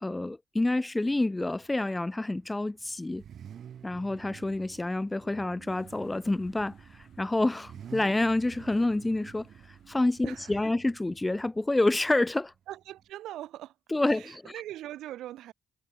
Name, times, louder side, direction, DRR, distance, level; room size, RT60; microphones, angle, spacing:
voice 1, 0.0-3.2 3.8-9.5 9.9-12.5 13.9-14.4, left 2 dB, 15° left, 0.3 m, -28 dB
Car / Idling / Accelerating revving vroom, 1.0-13.1, right 9 dB, 60° right, 3.2 m, -51 dB
Bass guitar, 5.3-8.7, right 4 dB, 35° right, 2.8 m, -61 dB
sound 1, 5.7-10.5, left 10 dB, 65° left, 6.1 m, -67 dB
voice 2, 10.2-10.7 12.7-13.8 14.1-15.5, right 13 dB, 85° right, 1.4 m, -41 dB
cardioid pair, 90°, 0 cm